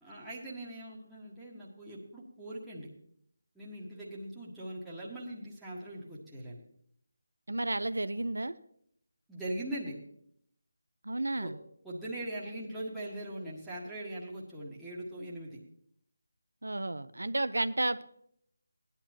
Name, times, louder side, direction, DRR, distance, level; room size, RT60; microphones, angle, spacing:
voice 1, 0.0-2.9 3.6-6.6 9.3-10.0 11.4-11.5 11.8-15.6, right 1 dB, 5° right, -9 dB, 1.8 m, -41 dB
voice 2, 7.5-8.6 11.0-11.6 16.6-18.0, right 2 dB, 75° right, 14 dB, 0.6 m, -32 dB
16.0 x 10.5 x 3.0 m, 0.69 s
figure-of-eight pair, 160°, 0 cm